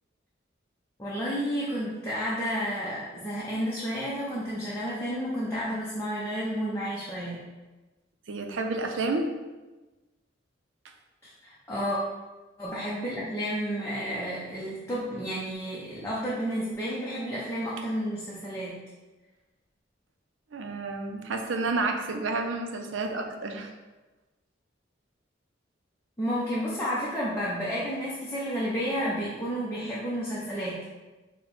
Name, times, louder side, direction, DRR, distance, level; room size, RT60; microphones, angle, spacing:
voice 1, 1.0-7.4 11.2-12.0 12.6-18.8 26.2-30.8, equal, 15° left, -7 dB, 0.6 m, -31 dB
voice 2, 8.3-9.3 20.5-23.7, right 3 dB, 90° right, 4 dB, 0.5 m, -30 dB
4.3 x 2.2 x 4.0 m, 1.2 s
head